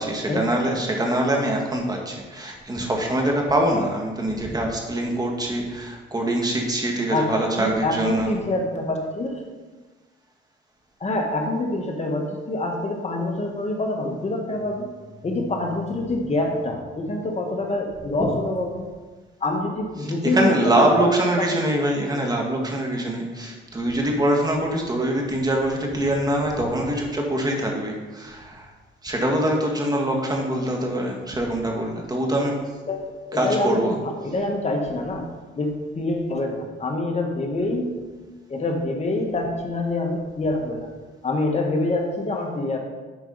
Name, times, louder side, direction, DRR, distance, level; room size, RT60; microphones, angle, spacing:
voice 1, 0.0-8.4 20.0-28.7 29.0-32.5 33.3-34.0, right 1 dB, 20° right, 0 dB, 1.8 m, -24 dB
voice 2, 7.1-9.5 11.0-14.9 15.2-18.8 19.4-21.1 21.4-21.6 32.9-38.0 38.5-40.9 41.2-42.8, left 2 dB, 35° left, 2 dB, 1.6 m, -26 dB
10.5 x 4.7 x 4.1 m, 1.3 s
cardioid pair, 90°, 20 cm